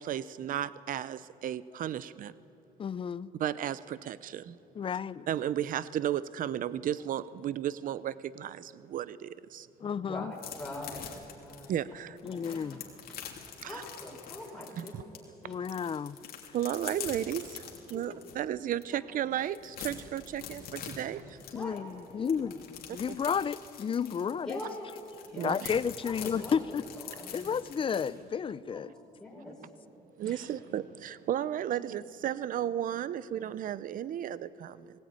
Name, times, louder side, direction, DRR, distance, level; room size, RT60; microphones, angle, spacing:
voice 1, 0.0-2.3 3.4-4.5 4.9-5.0 5.3-9.7 11.7-12.2 13.6-13.8 14.8-15.0 16.5-17.4 17.9-21.2 23.1-23.2 25.4-25.8 30.2-34.8, right 11 dB, 55° right, 17 dB, 0.7 m, -34 dB
voice 2, 2.8-3.3 4.8-5.3 9.8-10.3 12.2-12.8 15.4-16.2 21.5-24.6 25.4-26.9 27.3-28.9, left 7 dB, 30° left, 18 dB, 0.5 m, -32 dB
voice 3, 9.8-10.3 10.6-11.8 12.2-12.8 13.1-13.2 13.6-15.2 17.9-18.2 21.0-21.1 21.5-22.5 24.4-24.9 25.2-25.7 26.0-26.6 27.0-27.6 28.5-28.8 29.2-29.6 30.2-30.4, left 1 dB, 5° left, -3 dB, 5.1 m, -44 dB
sound 1, 10.4-15.2 15.5-18.4 18.8-18.9 19.2-28.1, left 8 dB, 60° left, 3.0 m, -44 dB
19.5 x 17.5 x 9.1 m, 2.7 s
cardioid pair, 110°, 17 cm